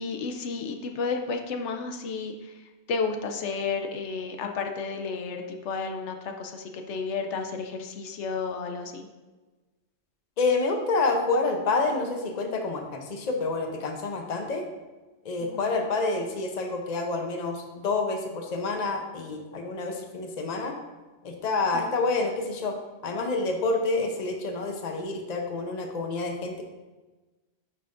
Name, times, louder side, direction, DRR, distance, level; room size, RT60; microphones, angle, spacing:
voice 1, 0.0-2.6 2.9-9.0 15.4-15.7 21.7-21.9, left 4 dB, 85° left, 4 dB, 1.0 m, -32 dB
voice 2, 10.4-14.6 15.2-20.8 21.2-22.8 23.0-26.6, left 3 dB, 40° left, 3 dB, 0.8 m, -28 dB
9.5 x 5.6 x 2.5 m, 1.2 s
omnidirectional pair, 1.2 m